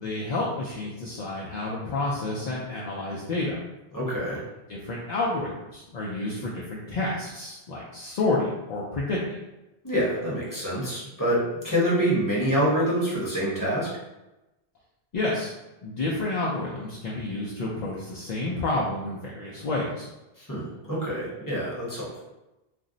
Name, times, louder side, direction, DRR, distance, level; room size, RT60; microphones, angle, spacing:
voice 1, 0.0-3.6 4.7-9.2 15.1-15.5 15.8-20.1, left 2 dB, 55° left, -5 dB, 0.5 m, -29 dB
voice 2, 3.9-4.4 9.8-11.4 11.6-13.9 20.5-22.2, equal, 20° left, -7 dB, 0.8 m, -26 dB
2.5 x 2.0 x 3.7 m, 0.99 s
omnidirectional pair, 1.1 m